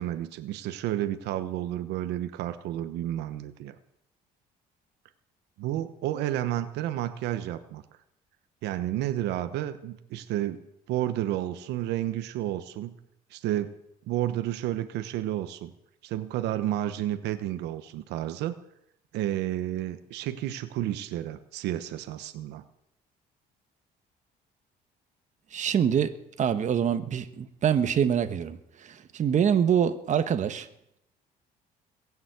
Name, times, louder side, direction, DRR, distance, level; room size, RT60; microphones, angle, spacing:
voice 1, 0.0-3.8 5.6-7.8 8.6-10.6 10.9-13.0 13.3-13.7 14.1-15.7 16.0-18.5 19.1-22.6, right 13 dB, 85° right, 10 dB, 1.1 m, -31 dB
voice 2, 25.5-26.1 26.4-30.7, right 8 dB, 45° right, 9 dB, 1.3 m, -25 dB
21.5 x 7.3 x 8.1 m, 0.77 s
cardioid pair, 110°, 17 cm